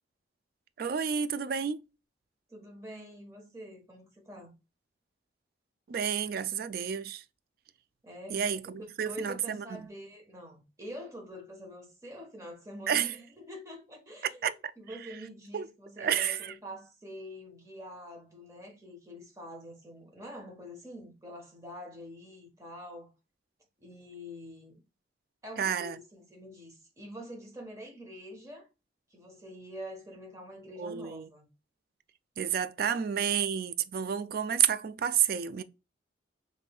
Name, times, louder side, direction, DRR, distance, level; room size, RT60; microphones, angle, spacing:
voice 1, 0.8-1.9 5.9-7.2 8.3-9.9 12.9-13.1 14.4-14.5 15.0-15.1 15.5-15.7 16.0-16.5 25.6-26.0 30.8-31.3 32.4-35.6, right 8 dB, 50° right, 0.3 m, -30 dB
voice 2, 2.5-4.5 8.0-23.1 23.8-24.8 25.4-28.7 29.1-31.5 32.8-33.0, equal, 15° right, 1.2 m, -46 dB
5.2 x 3.2 x 2.3 m
head